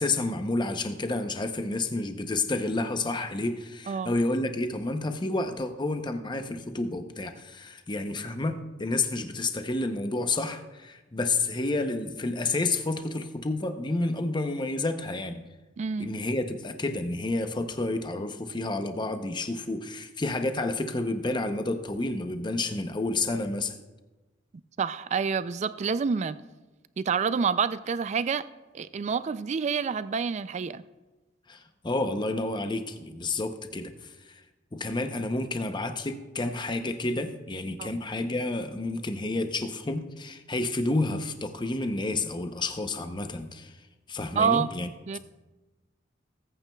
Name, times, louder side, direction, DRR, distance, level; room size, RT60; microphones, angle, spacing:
voice 1, 0.0-15.4 16.0-23.7 31.5-34.1 34.7-43.7 44.1-44.9, left 2 dB, 25° left, 7 dB, 0.7 m, -30 dB
voice 2, 15.8-16.1 24.8-26.4 27.0-28.4 28.7-30.8 37.8-38.0 44.4-44.7 45.1-45.2, right 6 dB, 35° right, 15 dB, 0.3 m, -28 dB
19.5 x 9.0 x 2.3 m, 1.2 s
head